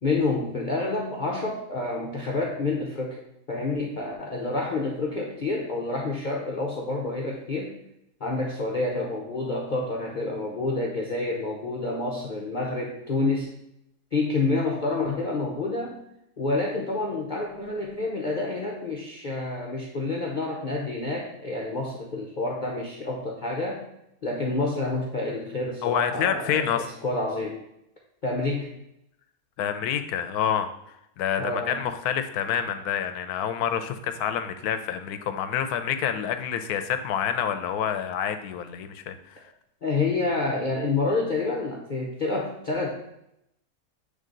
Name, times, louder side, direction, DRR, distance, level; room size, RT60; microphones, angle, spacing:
voice 1, 0.0-3.2 3.5-7.7 8.2-13.5 14.1-16.0 16.4-23.8 24.2-27.6 28.2-28.7 31.4-31.8 39.8-42.9, left 3 dB, 45° left, -2 dB, 0.6 m, -28 dB
voice 2, 25.8-26.9 29.6-30.7 31.2-39.4, left 8 dB, 75° left, 9 dB, 1.1 m, -27 dB
7.6 x 3.3 x 3.8 m, 0.80 s
omnidirectional pair, 1.7 m